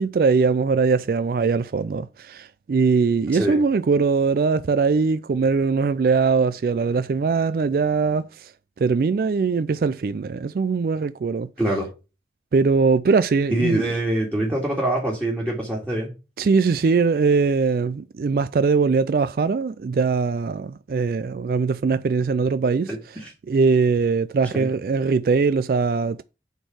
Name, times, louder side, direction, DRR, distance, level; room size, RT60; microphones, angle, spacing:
voice 1, 0.0-8.5 8.8-11.5 12.5-13.9 16.4-22.9 23.5-26.2, right 4 dB, 55° right, 0.3 m, -21 dB
voice 2, 3.3-3.6 11.6-11.9 13.5-16.1 22.9-23.3 24.5-24.7, right 1 dB, 10° right, 2.1 m, -24 dB
7.9 x 4.4 x 6.1 m
head